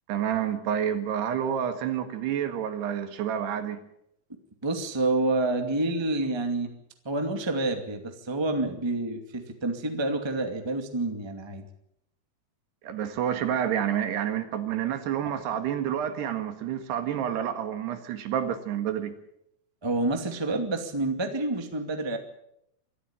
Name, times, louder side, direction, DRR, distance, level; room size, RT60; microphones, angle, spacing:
voice 1, 0.1-3.8 12.8-19.1, right 9 dB, 75° right, 8 dB, 3.7 m, -29 dB
voice 2, 4.6-6.7 7.0-11.6 19.8-22.2, right 2 dB, 10° right, 5 dB, 1.2 m, -28 dB
24.5 x 14.0 x 8.9 m, 0.78 s
omnidirectional pair, 4.8 m